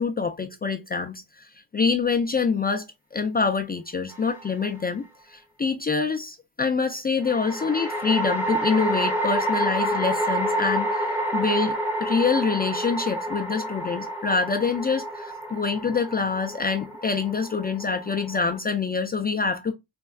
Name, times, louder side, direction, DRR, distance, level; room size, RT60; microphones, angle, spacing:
voice 1, 0.0-1.5 1.7-2.8 3.1-19.7, left 5 dB, 20° left, 0.3 m, -26 dB
sound 1, 4.1-4.8 7.2-18.6, right 1 dB, 5° right, 0.7 m, -28 dB
4.3 x 2.2 x 2.2 m
cardioid pair, 100°, 47 cm